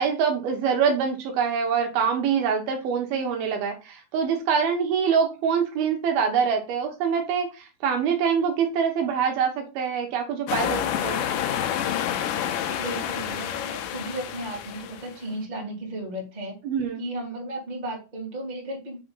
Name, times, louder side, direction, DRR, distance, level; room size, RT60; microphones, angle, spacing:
voice 1, 0.0-11.2 16.6-17.0, right 6 dB, 75° right, 3 dB, 2.9 m, -25 dB
sound 1, 10.5-15.2, left 10 dB, 80° left, 2.0 m, -29 dB
voice 2, 12.5-16.5 17.0-19.0, right 1 dB, 15° right, -2 dB, 1.7 m, -34 dB
6.2 x 3.8 x 5.4 m, 0.31 s
omnidirectional pair, 4.6 m